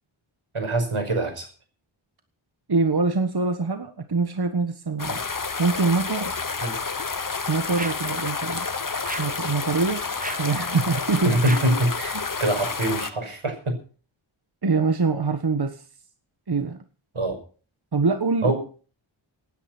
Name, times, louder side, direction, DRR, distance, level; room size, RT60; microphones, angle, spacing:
voice 1, 0.5-1.5 5.1-5.2 6.6-6.8 11.2-13.8 17.1-17.4 18.4-18.5, right 1 dB, 90° right, 4 dB, 6.0 m, -24 dB
voice 2, 2.7-5.2 5.6-6.3 7.5-8.7 9.2-10.0 10.4-11.4 14.6-15.8 16.5-16.8 17.9-18.5, right 4 dB, 50° right, 8 dB, 1.4 m, -24 dB
sound 1, 5.0-13.1, left 4 dB, 40° left, 1.2 m, -30 dB
sound 2, 7.7-8.2 9.0-9.4 10.2-10.6 11.4-11.8, right 2 dB, 15° right, 1.2 m, -35 dB
17.5 x 10.0 x 6.1 m, 0.39 s
wide cardioid pair, 60°, 48 cm